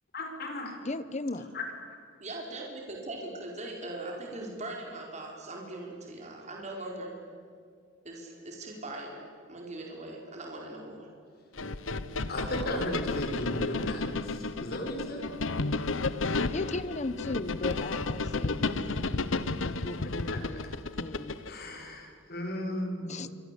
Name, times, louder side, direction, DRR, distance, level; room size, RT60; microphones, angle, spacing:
voice 1, 0.1-0.7 1.5-1.6 12.3-15.2 19.8-19.9 21.5-23.3, left 1 dB, 50° left, 4 dB, 5.9 m, -35 dB
voice 2, 0.8-1.5 16.2-19.2 19.8-20.7 21.0-21.4 23.0-23.3, left 2 dB, 35° left, 15 dB, 1.2 m, -37 dB
voice 3, 2.2-7.1 8.0-11.1, right 2 dB, 35° right, 0 dB, 4.8 m, -40 dB
sound 1, 11.6-21.5, left 3 dB, 85° left, 1.1 m, -32 dB
27.5 x 25.0 x 8.5 m, 2.2 s
head